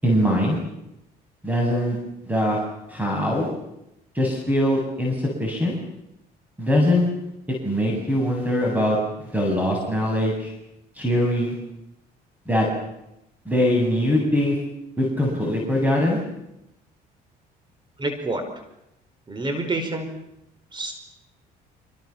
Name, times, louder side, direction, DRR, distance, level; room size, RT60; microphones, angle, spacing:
voice 1, 0.0-0.6 1.4-2.0 2.3-2.6 2.9-3.5 4.1-5.7 6.6-7.1 7.6-9.0 9.3-10.5 11.0-11.6 12.5-12.7 13.5-14.6 15.0-16.2, left 1 dB, 10° right, 0 dB, 7.9 m, -22 dB
voice 2, 18.0-18.4 19.3-20.1 20.7-20.9, right 2 dB, 25° right, 7 dB, 5.1 m, -27 dB
27.0 x 26.5 x 7.3 m, 0.86 s
cardioid pair, 110°, 17 cm